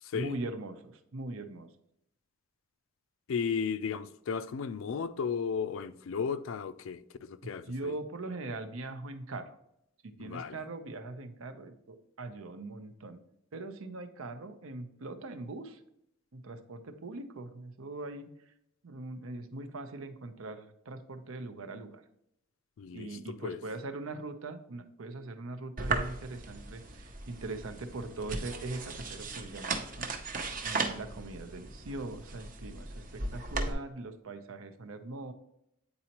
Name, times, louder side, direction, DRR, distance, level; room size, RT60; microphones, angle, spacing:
voice 1, 0.1-1.7 7.4-9.6 10.0-13.2 13.5-15.8 16.3-18.3 18.8-22.0 22.9-30.1 30.6-35.3, right 2 dB, 85° right, 0.7 m, -41 dB
voice 2, 3.3-7.9 10.2-10.6 22.8-23.6, left 6 dB, 75° left, 0.4 m, -35 dB
sound 1, 25.8-33.7, right 3 dB, 40° right, 0.7 m, -37 dB
8.7 x 4.1 x 2.9 m
head